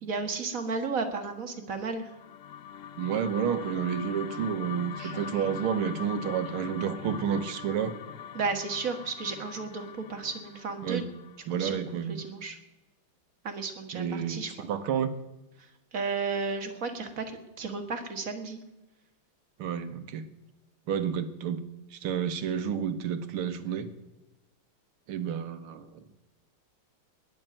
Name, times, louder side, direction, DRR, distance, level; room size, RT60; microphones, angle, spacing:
voice 1, 0.0-2.1 5.0-5.5 8.3-11.1 11.5-11.8 12.1-12.6 13.4-14.5 15.6-18.6, right 4 dB, 40° right, 5 dB, 2.0 m, -34 dB
sound 1, 1.9-12.2, left 9 dB, 90° left, 0.6 m, -42 dB
voice 2, 3.0-8.0 10.8-11.0 11.5-12.2 13.9-15.1 19.6-20.3 20.9-21.6 21.9-23.9 25.1-26.0, right 8 dB, 85° right, 10 dB, 2.0 m, -30 dB
20.0 x 6.9 x 8.9 m, 1.0 s
omnidirectional pair, 2.3 m